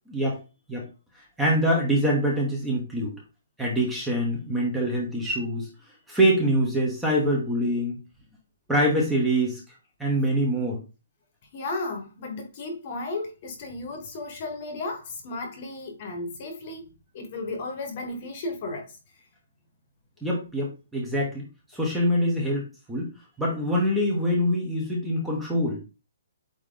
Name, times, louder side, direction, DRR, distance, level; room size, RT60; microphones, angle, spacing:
voice 1, 1.4-3.1 3.6-5.7 6.1-8.0 8.7-9.6 10.0-10.8 20.2-21.4 21.7-23.1 23.4-25.8, equal, 5° right, 1.0 m, -24 dB
voice 2, 11.5-16.9 17.1-18.9, left 2 dB, 30° left, 1.2 m, -34 dB
8.5 x 3.0 x 3.8 m
hypercardioid pair, 180°, 0 cm